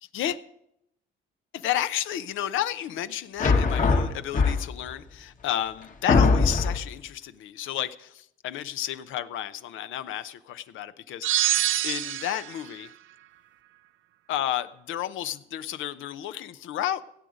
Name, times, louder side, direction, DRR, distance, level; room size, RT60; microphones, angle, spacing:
voice 1, 1.5-11.4 11.8-12.9 14.3-17.0, left 11 dB, 80° left, 13 dB, 0.6 m, -32 dB
sound 1, 3.4-4.9 5.6-5.7 6.1-6.9, left 4 dB, 40° left, 1.2 m, -21 dB
sound 2, 11.2-12.6, right 13 dB, 75° right, 0.5 m, -25 dB
16.5 x 7.9 x 5.0 m, 0.79 s
cardioid pair, 90°, 20 cm